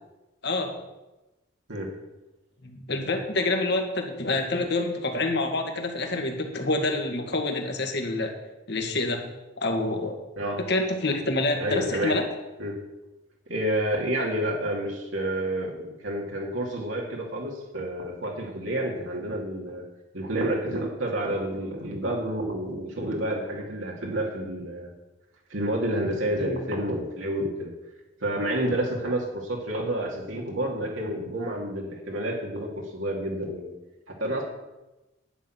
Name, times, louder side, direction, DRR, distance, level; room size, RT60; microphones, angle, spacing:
voice 1, 2.6-8.3 8.7-9.2 9.6-10.2 10.7-12.2 26.4-26.6, left 2 dB, 55° left, 4 dB, 2.0 m, -27 dB
voice 2, 10.4-10.7 11.6-12.2 12.6-12.8 13.5-15.8 16.0-19.8 20.1-24.9 25.5-27.7 28.2-33.7 34.1-34.4, right 1 dB, 85° right, -1 dB, 2.3 m, -29 dB
11.0 x 6.1 x 9.1 m, 1.0 s
head